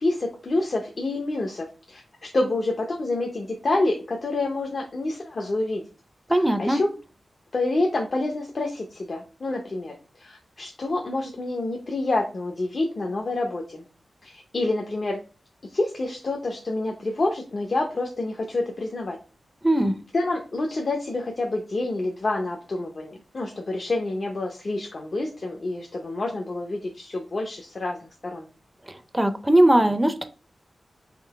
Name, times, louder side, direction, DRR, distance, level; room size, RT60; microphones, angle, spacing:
voice 1, 0.0-5.8 6.6-6.9 7.5-9.9 10.2-13.8 14.2-15.2 15.7-19.2 20.1-28.5, left 2 dB, 45° left, 0.6 m, -28 dB
voice 2, 6.3-6.8 19.6-19.9 29.1-30.2, right 1 dB, 10° right, 0.5 m, -19 dB
3.7 x 2.9 x 4.5 m
wide cardioid pair, 135°, 0 cm